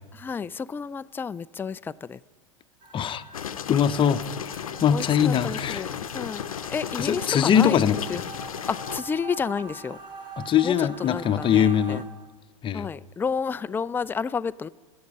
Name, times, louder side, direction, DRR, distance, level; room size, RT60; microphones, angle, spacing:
voice 1, 0.1-2.2 4.9-6.4 6.7-7.8 8.1-8.2 8.7-10.0 10.6-12.0 12.7-14.7, left 6 dB, 10° left, 0.4 m, -31 dB
sound 1, 2.8-12.0, right 4 dB, 25° right, 3.3 m, -44 dB
voice 2, 2.9-3.2 3.7-5.8 7.0-8.2 10.4-12.1 12.6-12.9, left 8 dB, 30° left, 0.8 m, -22 dB
sound 2, 3.3-9.0, left 8 dB, 85° left, 0.8 m, -34 dB
26.0 x 8.7 x 5.3 m
hypercardioid pair, 90°, 18 cm